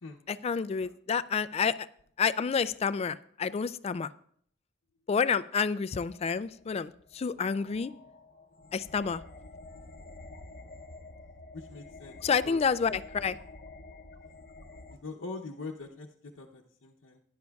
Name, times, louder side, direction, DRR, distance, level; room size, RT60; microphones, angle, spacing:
voice 1, 0.3-1.9 2.2-4.1 5.1-7.9 8.7-9.2 12.2-13.4, left 6 dB, 35° left, 15 dB, 0.3 m, -29 dB
sound 1, 6.0-15.0, left 2 dB, 50° left, 0.8 m, -49 dB
voice 2, 11.5-12.2 12.4-12.6 14.9-17.2, left 3 dB, 90° left, -2 dB, 0.8 m, -43 dB
16.5 x 10.5 x 2.3 m, 0.62 s
head